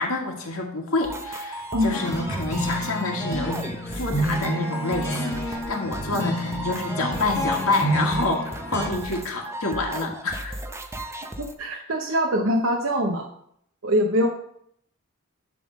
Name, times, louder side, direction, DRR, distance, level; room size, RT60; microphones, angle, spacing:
voice 1, 0.0-10.6 11.7-11.8, left 2 dB, 75° left, 1 dB, 1.9 m, -28 dB
sound 1, 1.0-11.5, right 1 dB, 15° right, 0.6 m, -35 dB
sound 2, 1.9-8.9, equal, 10° left, 1.2 m, -29 dB
voice 2, 11.4-13.3 13.8-14.3, equal, 65° right, 1 dB, 0.8 m, -23 dB
11.0 x 3.7 x 6.5 m, 0.72 s
head